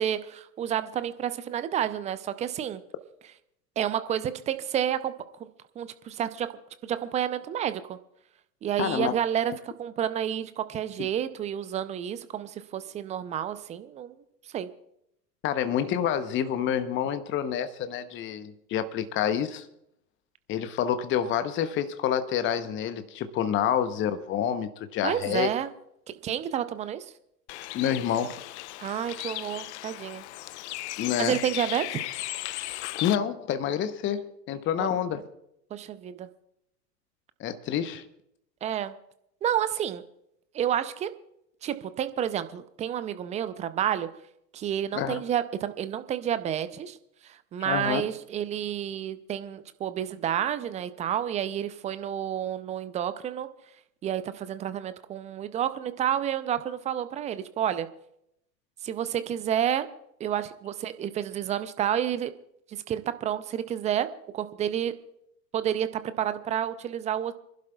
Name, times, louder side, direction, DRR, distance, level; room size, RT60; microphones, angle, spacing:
voice 1, 0.0-2.8 3.8-5.1 5.4-5.5 5.8-6.5 6.8-8.0 8.6-14.2 14.5-14.7 25.0-25.7 26.1-27.1 28.8-30.2 31.2-32.0 34.8-34.9 35.7-36.3 38.6-38.9 39.4-40.0 40.5-41.1 41.6-44.1 44.5-47.0 47.2-53.5 54.0-57.9 58.8-59.9 60.2-62.3 62.7-64.1 64.3-64.9 65.5-67.3, right 10 dB, 15° right, 0.5 m, -30 dB
voice 2, 8.8-9.1 15.4-19.7 20.5-25.5 27.7-28.4 31.0-31.4 32.7-35.2 37.4-38.0 44.9-45.2 47.6-48.0, left 9 dB, 25° left, 0.9 m, -28 dB
Bird, 27.5-33.2, left 17 dB, 45° left, 0.4 m, -36 dB
29.0 x 11.5 x 2.3 m
figure-of-eight pair, 100°, 50 cm